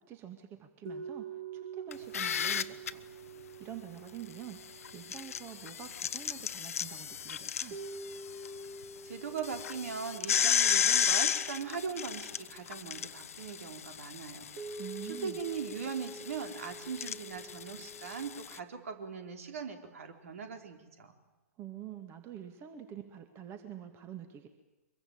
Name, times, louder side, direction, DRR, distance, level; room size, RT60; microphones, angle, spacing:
voice 1, 0.1-3.0 3.3-7.8 14.8-15.4 21.6-24.5, right 10 dB, 30° right, 7 dB, 2.4 m, -46 dB
sound 1, 0.9-6.3 7.7-13.1 14.6-18.4, right 3 dB, 45° right, 4.3 m, -47 dB
sound 2, 1.9-2.9 4.8-8.5 8.8-8.9 9.4-18.6, left 8 dB, 65° left, 1.1 m, -33 dB
voice 2, 9.0-14.5 15.1-21.1, right 6 dB, 65° right, 6 dB, 3.9 m, -40 dB
24.5 x 23.0 x 8.9 m, 1.1 s
figure-of-eight pair, 110°, 8 cm